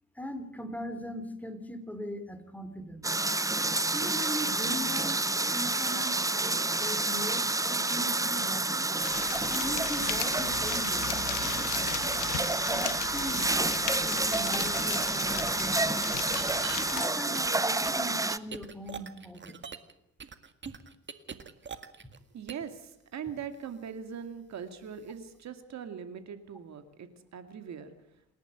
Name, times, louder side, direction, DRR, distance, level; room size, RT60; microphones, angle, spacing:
voice 1, 0.2-3.1 3.9-5.2 5.5-8.9 9.5-11.1 12.0-16.2 16.9-19.6, equal, 5° left, 8 dB, 3.5 m, -40 dB
sound 1, 3.0-18.4, right 2 dB, 10° right, 0.8 m, -29 dB
sound 2, 9.0-17.1, left 16 dB, 90° left, 0.8 m, -38 dB
sound 3, 14.3-14.4 15.0-15.1 16.3-16.8 17.3-19.9 20.2-22.2 22.5-22.7, right 6 dB, 40° right, 1.9 m, -42 dB
voice 2, 22.3-27.9, right 7 dB, 65° right, 9 dB, 2.4 m, -41 dB
28.0 x 11.0 x 9.2 m, 0.76 s
cardioid pair, 90°, 30 cm